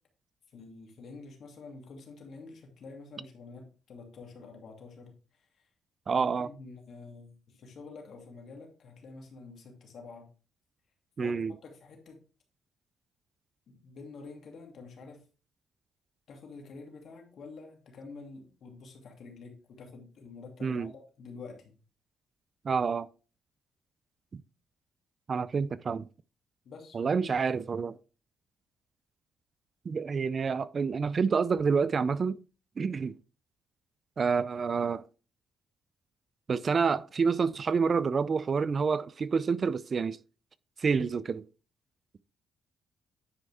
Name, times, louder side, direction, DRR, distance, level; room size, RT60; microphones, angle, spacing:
voice 1, 0.5-5.5 6.1-10.3 11.2-12.2 13.7-15.2 16.3-21.7 26.6-27.3 27.7-27.9, left 4 dB, 60° left, 2.5 m, -48 dB
voice 2, 6.1-6.5 11.2-11.5 20.6-20.9 22.6-23.1 24.3-24.4 25.3-26.1 26.9-28.0 29.9-32.4 32.8-33.2 34.2-35.0 36.5-40.2 40.8-41.5, right 5 dB, 40° right, 0.4 m, -28 dB
9.9 x 5.2 x 3.4 m
cardioid pair, 90°, 0 cm